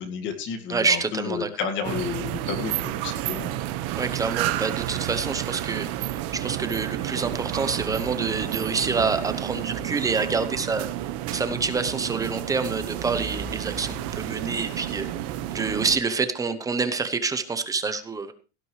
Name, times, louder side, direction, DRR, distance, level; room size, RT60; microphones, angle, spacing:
voice 1, 0.0-3.6, left 6 dB, 35° left, 7 dB, 2.0 m, -31 dB
voice 2, 0.7-1.5 4.0-10.9 11.3-15.1 15.5-18.3, right 4 dB, 10° right, 10 dB, 0.9 m, -27 dB
sound 1, 1.8-16.0, right 12 dB, 45° right, 1.3 m, -31 dB
17.0 x 12.5 x 3.2 m, 0.33 s
supercardioid pair, 170°, 34 cm